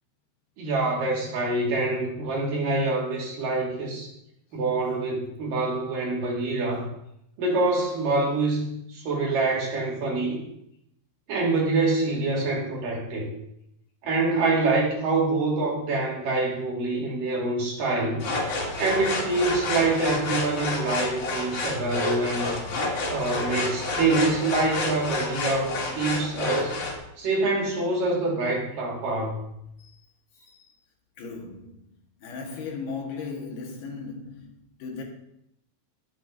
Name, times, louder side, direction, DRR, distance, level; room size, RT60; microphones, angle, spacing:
voice 1, 0.6-4.1 4.5-6.9 7.4-10.4 11.3-13.3 14.0-18.2 18.8-22.5 23.1-26.8 27.2-29.4, right 3 dB, 65° right, 3.7 m, -25 dB
sound 1, 18.2-27.0, left 2 dB, 55° left, 3.5 m, -29 dB
voice 2, 31.2-31.8 32.2-35.0, left 4 dB, 75° left, 3.5 m, -37 dB
20.5 x 6.9 x 2.7 m
omnidirectional pair, 4.3 m